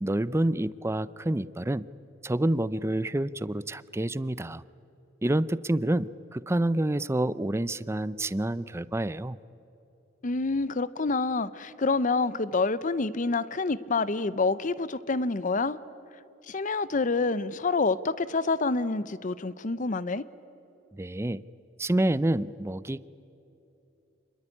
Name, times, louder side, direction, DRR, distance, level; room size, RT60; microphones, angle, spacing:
voice 1, 0.0-1.9 2.2-4.6 5.2-9.4 20.9-21.4 21.8-23.0, right 1 dB, 15° right, 17 dB, 0.5 m, -28 dB
voice 2, 10.2-15.8 16.5-20.2, left 3 dB, 45° left, 16 dB, 0.7 m, -27 dB
27.5 x 21.0 x 9.9 m, 3.0 s
head